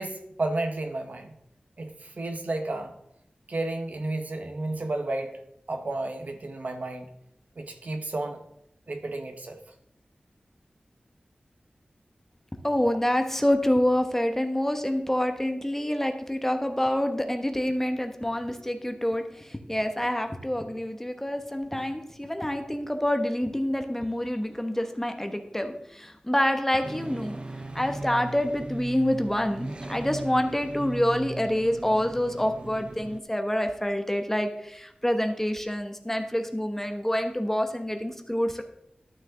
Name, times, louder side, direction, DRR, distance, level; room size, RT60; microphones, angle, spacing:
voice 1, 0.0-1.3 1.8-2.9 3.5-5.4 5.7-7.1 7.6-8.4 8.9-9.6, right 2 dB, 65° right, 5 dB, 1.1 m, -32 dB
voice 2, 12.6-27.4 27.7-38.6, left 1 dB, 10° left, 6 dB, 1.0 m, -27 dB
sound 1, 26.8-33.2, right 2 dB, 35° right, 0.6 m, -38 dB
11.5 x 6.5 x 3.8 m, 0.78 s
wide cardioid pair, 70°, 3 cm